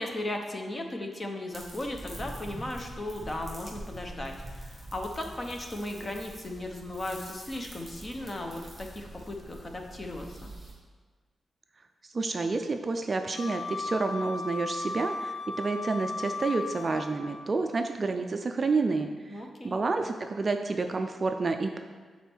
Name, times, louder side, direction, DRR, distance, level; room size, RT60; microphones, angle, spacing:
voice 1, 0.0-10.5 19.3-19.8, left 1 dB, 25° left, 3 dB, 0.7 m, -36 dB
sound 1, 1.5-10.7, right 1 dB, 15° right, 1.9 m, -44 dB
voice 2, 12.1-21.8, right 3 dB, 30° right, 6 dB, 0.3 m, -29 dB
Wind instrument woodwind instrument, 13.3-17.4, left 3 dB, 65° left, 1.0 m, -36 dB
7.2 x 4.2 x 4.5 m, 1.5 s
wide cardioid pair, 160°, 0 cm